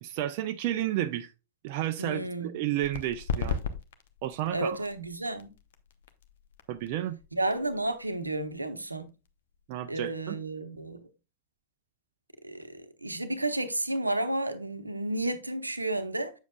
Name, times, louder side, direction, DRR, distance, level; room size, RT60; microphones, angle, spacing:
voice 1, 0.0-1.3 1.6-3.6 4.2-4.9 6.7-7.2 9.7-10.4, right 13 dB, 50° right, 0.5 m, -32 dB
voice 2, 2.0-2.6 4.5-5.5 7.3-9.1 9.9-11.0 12.4-16.3, right 2 dB, 85° right, 0.8 m, -32 dB
sound 1, 2.8-10.1, left 5 dB, 60° left, 0.9 m, -39 dB
8.1 x 7.1 x 2.3 m
figure-of-eight pair, 90°, 0 cm